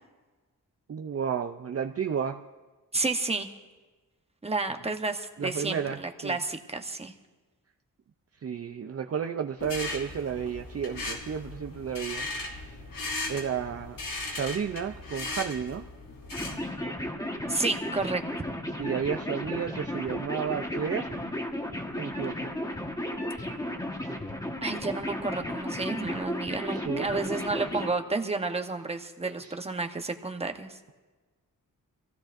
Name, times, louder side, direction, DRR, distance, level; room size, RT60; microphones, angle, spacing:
voice 1, 0.9-2.4 5.4-6.4 8.4-12.3 12.6-12.8 13.3-14.0 14.3-15.8 18.8-21.2 21.9-22.5 26.8-27.4 29.2-29.5, right 7 dB, 45° right, 5 dB, 0.5 m, -32 dB
voice 2, 2.9-3.5 4.4-7.1 17.5-18.2 24.6-30.8, right 3 dB, 15° right, 5 dB, 1.0 m, -31 dB
sound 1, 9.6-16.7, left 2 dB, 65° left, 2.8 m, -37 dB
sound 2, 16.3-27.9, left 1 dB, 10° left, 1.3 m, -34 dB
25.5 x 15.5 x 2.6 m, 1.3 s
wide cardioid pair, 125°, 35 cm